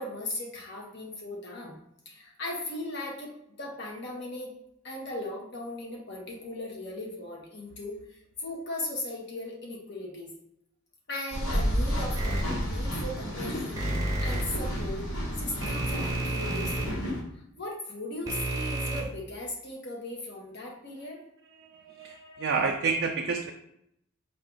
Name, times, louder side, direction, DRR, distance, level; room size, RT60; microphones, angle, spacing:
voice 1, 0.0-1.7 2.0-4.5 4.8-10.3 11.1-15.0 15.4-16.7 17.3-21.2 22.0-22.6, left 2 dB, 55° left, -1 dB, 1.1 m, -38 dB
sound 1, 11.3-17.2, equal, 80° left, 1.2 m, -31 dB
sound 2, 12.2-12.4 13.8-14.4 15.6-16.9 18.3-19.0, right 1 dB, 15° right, 0.7 m, -30 dB
voice 2, 21.6-23.5, right 5 dB, 60° right, 2 dB, 0.3 m, -29 dB
4.5 x 2.4 x 3.8 m, 0.75 s
head